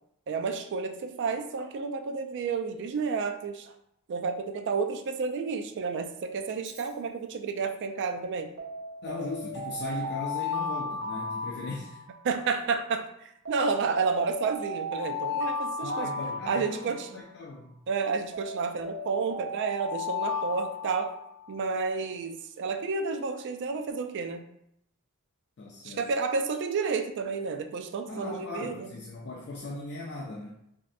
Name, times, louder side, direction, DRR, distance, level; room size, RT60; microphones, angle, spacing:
voice 1, 0.3-3.7 4.1-8.5 12.2-16.1 16.5-17.2 17.9-21.1 21.5-24.4 25.8-28.9, right 5 dB, 55° right, 7 dB, 0.3 m, -31 dB
Alarm, 6.5-6.9 8.6-12.3 13.5-17.2 18.3-21.5, left 3 dB, 80° right, 0.8 m, -35 dB
voice 2, 9.0-12.0 15.8-17.8 25.6-26.1 28.1-30.6, left 2 dB, 50° left, -2 dB, 0.4 m, -38 dB
3.1 x 2.7 x 2.5 m, 0.75 s
head